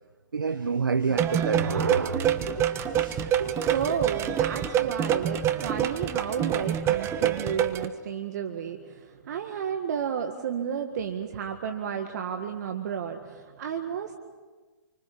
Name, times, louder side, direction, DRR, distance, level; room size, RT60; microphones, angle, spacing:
voice 1, 0.3-3.8, right 5 dB, 85° right, 12 dB, 0.9 m, -29 dB
sound 1, 1.1-7.9, right 9 dB, 25° right, 1.2 m, -26 dB
voice 2, 3.7-14.2, right 8 dB, 55° right, 5 dB, 1.8 m, -32 dB
28.5 x 24.5 x 5.5 m, 1.3 s
hypercardioid pair, 125°, 11 cm